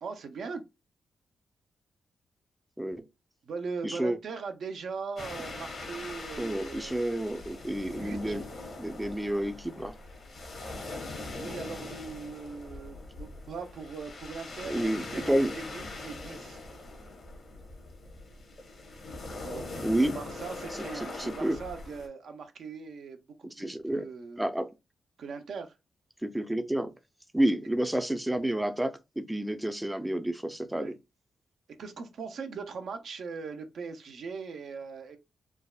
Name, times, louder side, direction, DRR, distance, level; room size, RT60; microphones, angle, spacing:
voice 1, 0.0-0.6 3.4-7.0 7.8-8.4 11.4-15.4 15.7-16.6 19.4-24.4 25.2-25.8 30.7-31.0 31.8-35.2, right 5 dB, 75° right, 0.5 m, -40 dB
voice 2, 3.8-4.2 6.4-8.4 8.8-9.9 14.7-15.5 19.8-20.2 21.2-21.6 23.6-24.0 24.4-24.7 26.2-26.9 27.3-30.9, right 1 dB, 10° right, 0.4 m, -29 dB
Waves on rocky beach, 5.2-22.1, left 2 dB, 65° left, 1.0 m, -42 dB
3.4 x 2.0 x 2.3 m
cardioid pair, 60°, 0 cm